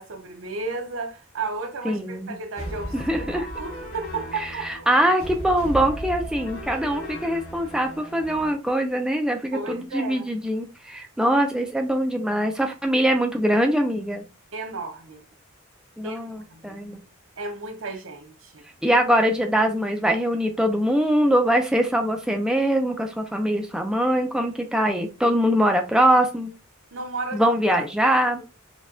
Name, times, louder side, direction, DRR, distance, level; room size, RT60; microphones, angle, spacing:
voice 1, 0.0-4.7 9.5-10.3 14.5-15.2 16.0-16.2 16.5-16.8 17.4-19.0 26.9-27.8 28.0-28.4, right 3 dB, 70° right, 0.7 m, -34 dB
voice 2, 1.8-2.4 2.9-3.5 4.3-14.2 16.0-17.0 18.8-26.5 27.3-28.4, equal, 5° right, 0.3 m, -23 dB
sound 1, 2.6-8.5, equal, 85° left, 1.9 m, -36 dB
4.1 x 2.2 x 2.5 m
head